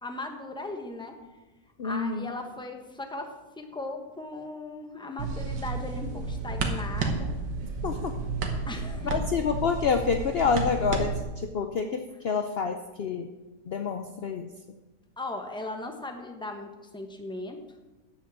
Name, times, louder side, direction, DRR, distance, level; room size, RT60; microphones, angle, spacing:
voice 1, 0.0-1.2 1.8-7.3 8.7-9.2 15.2-17.6, left 2 dB, 5° left, 4 dB, 0.9 m, -38 dB
voice 2, 1.8-2.3 7.8-8.2 9.0-13.3 13.7-14.5, left 5 dB, 70° left, 6 dB, 0.5 m, -28 dB
sound 1, 5.2-11.2, right 3 dB, 85° right, 2.0 m, -31 dB
10.5 x 7.4 x 7.6 m, 1.1 s
omnidirectional pair, 1.9 m